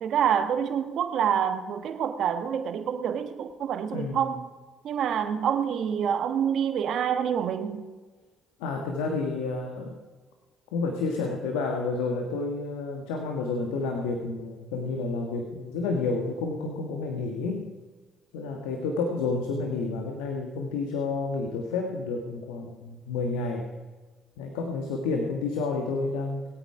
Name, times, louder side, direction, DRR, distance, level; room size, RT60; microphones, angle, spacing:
voice 1, 0.0-4.5 4.8-7.9, right 8 dB, 65° right, 1.3 m, -27 dB
voice 2, 3.9-4.2 8.6-10.0 10.7-17.7 18.3-23.6 24.4-26.4, left 3 dB, 90° left, 1.4 m, -30 dB
19.5 x 8.9 x 4.7 m
supercardioid pair, 65°, 0 cm